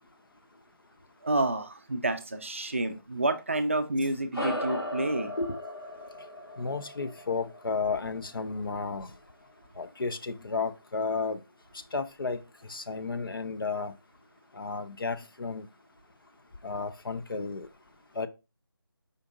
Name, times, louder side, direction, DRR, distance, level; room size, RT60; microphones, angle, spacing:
voice 1, 1.2-5.3, right 2 dB, 35° right, 0.4 m, -29 dB
sound 1, 4.3-9.1, left 1 dB, 90° left, 2.1 m, -37 dB
voice 2, 6.6-9.1 9.8-11.4 11.9-12.4 12.7-14.0 14.5-15.7 16.6-17.7 18.2-18.3, left 4 dB, 65° left, 0.5 m, -32 dB
5.1 x 2.5 x 3.7 m
figure-of-eight pair, 165°, 13 cm